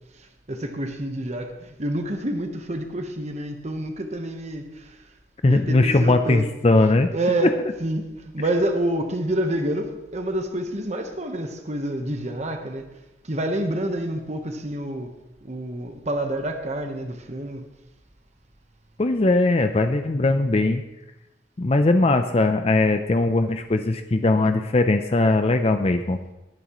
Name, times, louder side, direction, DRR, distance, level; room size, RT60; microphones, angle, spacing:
voice 1, 0.5-4.9 5.5-6.4 7.1-12.9 13.3-15.1 15.4-17.6, right 1 dB, 40° right, 5 dB, 1.1 m, -28 dB
voice 2, 5.4-7.1 7.4-7.5 19.0-20.8 21.6-26.2, left 2 dB, 35° left, 7 dB, 0.5 m, -20 dB
18.5 x 10.5 x 3.1 m, 0.96 s
head